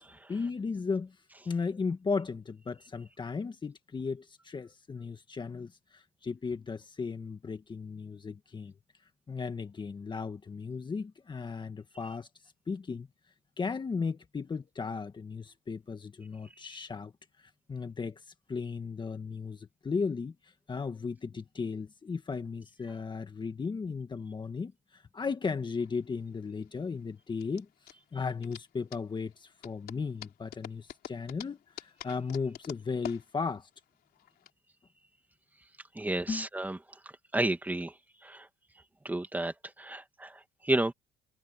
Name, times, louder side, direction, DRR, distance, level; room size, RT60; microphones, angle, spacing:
voice 1, 0.3-1.2 1.5-8.7 9.3-12.3 12.7-13.1 13.6-17.1 17.7-18.2 18.5-20.3 20.7-27.7 28.1-33.7 36.3-36.5, left 5 dB, 25° left, 1.8 m, -35 dB
sound 1, 25.6-34.5, left 12 dB, 70° left, 3.6 m, -48 dB
voice 2, 35.9-36.8 37.3-37.9 38.2-38.5 39.0-40.9, right 1 dB, 10° right, 2.4 m, -31 dB
cardioid pair, 110°, 17 cm